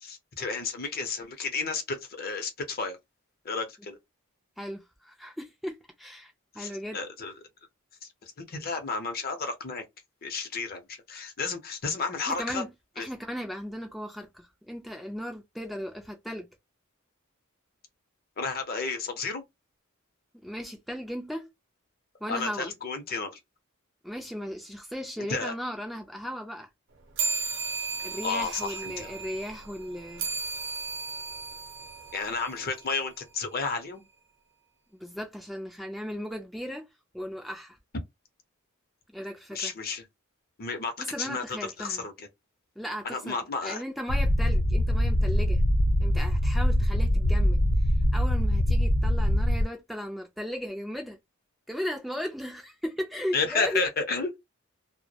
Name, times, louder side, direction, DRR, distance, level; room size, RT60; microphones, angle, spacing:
voice 1, 0.0-3.0 3.4-4.0 6.6-7.3 8.4-9.8 10.2-10.8 11.1-12.6 13.0-13.1 18.4-19.4 22.3-23.3 25.3-25.5 28.2-29.1 32.1-34.0 39.5-40.0 40.6-41.4 41.8-42.3 43.0-43.8 53.3-54.4, left 4 dB, 45° left, 0.6 m, -32 dB
voice 2, 4.6-7.0 12.3-16.5 20.4-21.5 22.2-22.7 24.0-26.7 28.0-30.3 34.9-36.9 37.1-37.8 39.1-39.7 41.0-42.0 42.8-45.6 46.0-47.6 48.1-51.2 51.7-53.8, equal, ahead, 0.3 m, -36 dB
sound 1, 27.2-33.0, right 4 dB, 60° right, 0.7 m, -35 dB
sound 2, 44.1-49.6, equal, 85° left, 0.7 m, -23 dB
2.2 x 2.0 x 2.7 m
head